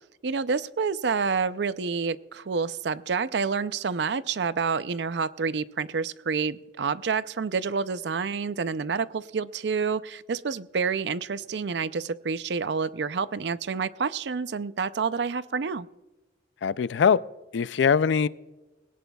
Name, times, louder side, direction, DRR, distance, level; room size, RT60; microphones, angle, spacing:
voice 1, 0.2-15.9, right 5 dB, 70° right, 0.5 m, -28 dB
voice 2, 16.6-17.2 17.5-18.3, left 6 dB, 80° left, 0.4 m, -22 dB
20.5 x 17.5 x 2.3 m
head